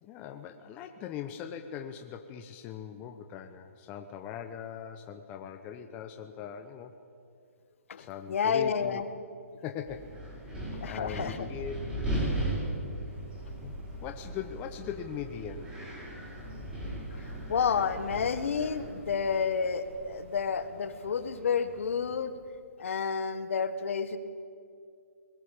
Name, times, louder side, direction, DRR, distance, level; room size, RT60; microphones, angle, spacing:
voice 1, 0.0-7.0 8.0-9.0 9.6-10.2 10.4-10.6 10.8-12.0 13.6-13.7 14.0-15.8, left 8 dB, 20° left, 6 dB, 0.9 m, -40 dB
voice 2, 7.9-9.0 10.8-11.5 17.5-22.3 22.8-24.2, left 6 dB, 60° left, 11 dB, 1.6 m, -30 dB
Wind, 9.9-19.4, right 1 dB, 15° right, 6.5 m, -37 dB
sound 1, 13.0-22.2, right 2 dB, 50° right, 7.7 m, -52 dB
21.0 x 17.0 x 8.7 m, 2.3 s
hypercardioid pair, 155°, 8 cm